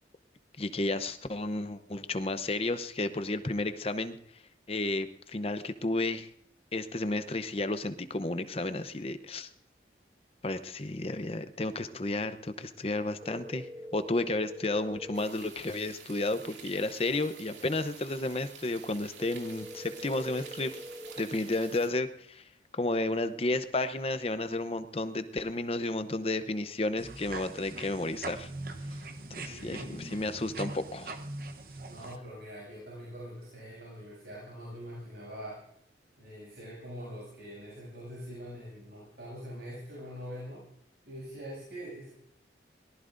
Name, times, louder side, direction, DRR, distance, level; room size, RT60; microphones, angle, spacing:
voice 1, 0.6-4.2 4.7-6.3 6.7-9.5 10.4-13.7 13.9-20.7 21.2-22.4 22.7-28.5 29.4-31.1, left 2 dB, 35° left, 10 dB, 0.7 m, -32 dB
sound 1, 13.2-15.2 19.2-21.2, equal, 5° right, 0.8 m, -44 dB
sound 2, 15.1-21.9, right 6 dB, 90° right, 2.6 m, -49 dB
sound 3, 27.0-32.2, right 2 dB, 50° right, 1.0 m, -41 dB
voice 2, 29.5-30.3 31.9-35.6 36.2-40.7 41.1-42.1, equal, 70° right, -5 dB, 7.4 m, -43 dB
23.5 x 18.5 x 2.6 m, 0.72 s
head